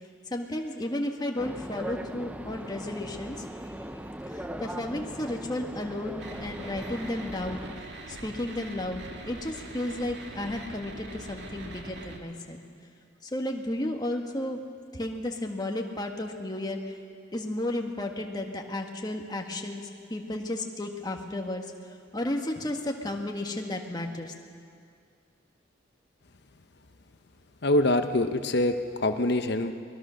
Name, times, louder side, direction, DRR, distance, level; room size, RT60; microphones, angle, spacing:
voice 1, 0.3-3.4 4.4-7.7 8.1-12.6 13.2-14.6 14.9-16.8 17.3-21.6 22.1-24.3, left 1 dB, 20° left, 2 dB, 1.7 m, -33 dB
sound 1, 1.4-7.7, right 1 dB, 10° right, 0.7 m, -39 dB
sound 2, 6.2-12.2, right 1 dB, 60° right, 2.3 m, -43 dB
voice 2, 27.6-29.7, left 1 dB, 60° left, 8 dB, 0.9 m, -25 dB
24.0 x 20.5 x 6.4 m, 2.3 s
head